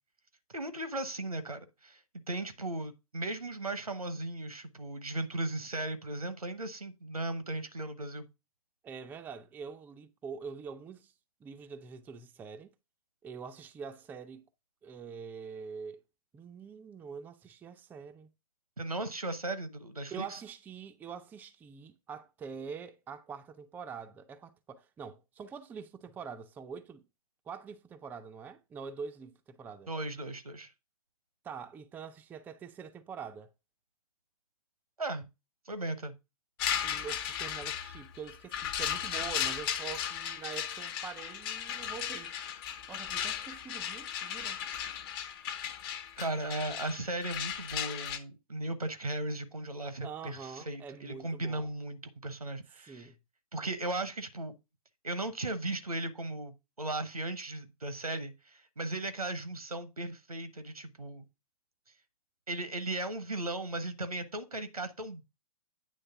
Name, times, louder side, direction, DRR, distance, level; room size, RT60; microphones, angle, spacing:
voice 1, 0.5-2.0 2.3-8.3 18.8-20.4 29.9-30.7 35.0-35.3 35.6-36.1 46.2-53.1 53.5-54.5 55.0-61.3 62.5-65.2, right 2 dB, 90° right, 1.0 m, -37 dB
voice 2, 8.8-11.1 11.4-12.7 13.2-14.5 14.8-16.0 16.3-18.3 20.1-27.1 27.5-29.9 31.4-33.5 36.8-42.3 42.9-44.7 50.0-51.7 52.8-53.2, right 6 dB, 10° right, 0.4 m, -45 dB
sound 1, 36.6-48.2, left 9 dB, 40° left, 1.0 m, -36 dB
8.9 x 3.2 x 5.6 m
figure-of-eight pair, 115°, 19 cm